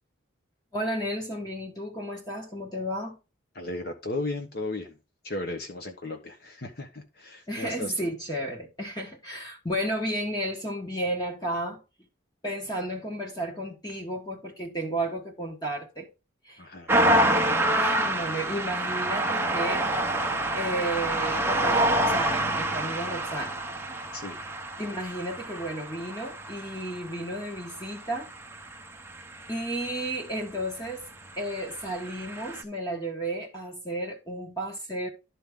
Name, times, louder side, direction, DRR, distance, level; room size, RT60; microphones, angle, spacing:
voice 1, 0.7-3.2 7.5-11.8 12.4-16.1 16.4-16.7 17.8-19.9 20.2-23.6 24.8-28.3 28.6-28.8 29.5-31.0 31.4-35.1, right 1 dB, 20° left, 1.5 m, -33 dB
voice 2, 3.5-5.0 5.2-8.1 16.6-17.3 24.1-24.4, left 2 dB, 50° left, 1.0 m, -35 dB
sound 1, 16.9-30.1 31.0-32.6, right 1 dB, 10° right, 0.8 m, -27 dB
12.0 x 4.3 x 3.7 m
head